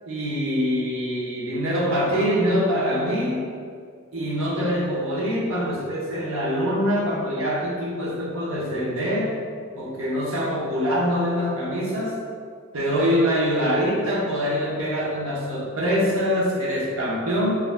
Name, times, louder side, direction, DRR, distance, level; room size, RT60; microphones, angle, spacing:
voice 1, 0.1-3.5 4.1-9.3 9.7-12.2 12.7-17.6, equal, 75° right, -5 dB, 0.7 m, -24 dB
2.4 x 2.1 x 3.2 m, 2.2 s
head